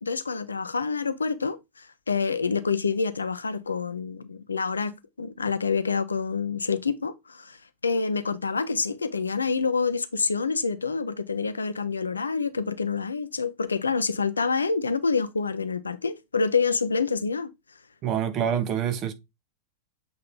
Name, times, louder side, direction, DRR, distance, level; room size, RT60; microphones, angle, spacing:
voice 1, 0.0-17.5, left 5 dB, 75° left, 0.6 m, -27 dB
voice 2, 18.0-19.1, right 9 dB, 35° right, 0.9 m, -26 dB
7.9 x 3.2 x 4.0 m
figure-of-eight pair, 90°, 0 cm